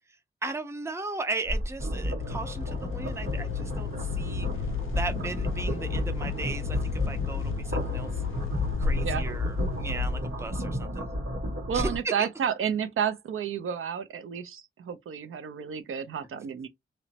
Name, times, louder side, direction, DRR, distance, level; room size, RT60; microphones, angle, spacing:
voice 1, 0.4-4.5 5.0-6.8 7.1-8.1 8.8-11.1 11.7-11.9 12.2-12.3, right 3 dB, 15° right, 0.4 m, -36 dB
sound 1, 1.4-12.0, equal, 50° right, 1.7 m, -32 dB
sound 2, 2.2-10.6, left 8 dB, 75° left, 0.4 m, -33 dB
voice 2, 11.7-16.7, right 8 dB, 80° right, 0.4 m, -31 dB
3.0 x 2.0 x 2.7 m
wide cardioid pair, 130°, 21 cm